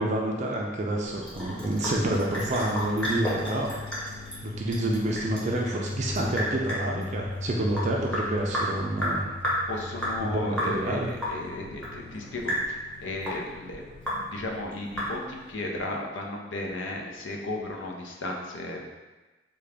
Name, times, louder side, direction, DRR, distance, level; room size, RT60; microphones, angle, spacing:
voice 1, 0.0-3.7 4.1-4.2 4.4-9.2 10.2-11.1, right 1 dB, 40° right, -1 dB, 0.4 m, -28 dB
Sink (filling or washing) / Drip, 1.0-15.5, equal, 5° left, 0.9 m, -33 dB
sound 1, 1.4-14.6, left 2 dB, 40° left, 0.4 m, -39 dB
voice 2, 9.7-18.9, left 2 dB, 85° left, 0 dB, 0.6 m, -35 dB
3.7 x 2.3 x 3.3 m, 1.2 s
head